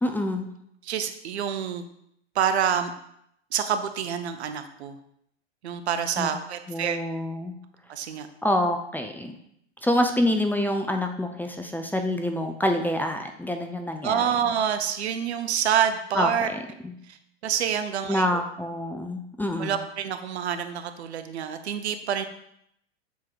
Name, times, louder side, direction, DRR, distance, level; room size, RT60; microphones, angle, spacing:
voice 1, 0.0-0.5 6.2-6.4 6.7-7.5 8.4-9.3 9.8-14.3 16.1-16.9 18.1-19.8, left 1 dB, 5° left, 5 dB, 0.5 m, -27 dB
voice 2, 0.8-1.8 2.3-2.9 3.5-5.0 5.6-7.0 7.9-8.3 14.0-16.5 17.1-17.2 17.4-18.4 19.6-22.2, right 8 dB, 70° right, 8 dB, 0.8 m, -27 dB
7.3 x 3.7 x 4.6 m, 0.74 s
hypercardioid pair, 90°, 33 cm